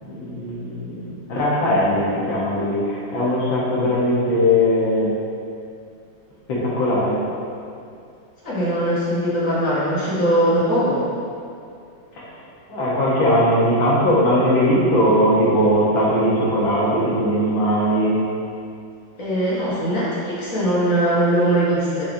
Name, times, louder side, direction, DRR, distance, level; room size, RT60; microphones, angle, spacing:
voice 1, 0.0-5.1 6.5-7.2 12.2-12.3 12.7-18.2, equal, 75° left, -6 dB, 2.1 m, -19 dB
voice 2, 8.4-11.0 19.2-22.0, right 1 dB, 45° left, -9 dB, 1.8 m, -20 dB
6.3 x 6.1 x 2.8 m, 2.5 s
omnidirectional pair, 2.2 m